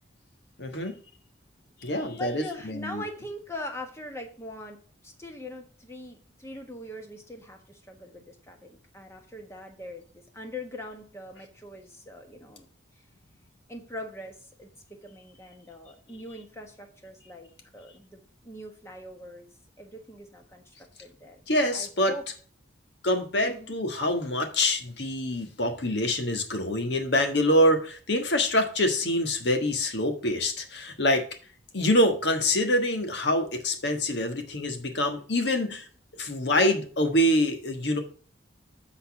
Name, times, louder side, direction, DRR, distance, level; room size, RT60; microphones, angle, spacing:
voice 1, 0.6-0.9 1.8-3.0 21.5-22.1 23.0-31.2 31.7-35.9 36.2-38.0, left 1 dB, 65° left, 5 dB, 1.4 m, -25 dB
voice 2, 2.1-12.7 13.0-13.1 13.7-14.7 15.0-19.5 19.8-21.4 21.7-22.2 23.4-23.7, left 1 dB, 15° left, 3 dB, 1.3 m, -42 dB
8.4 x 4.1 x 5.9 m, 0.41 s
head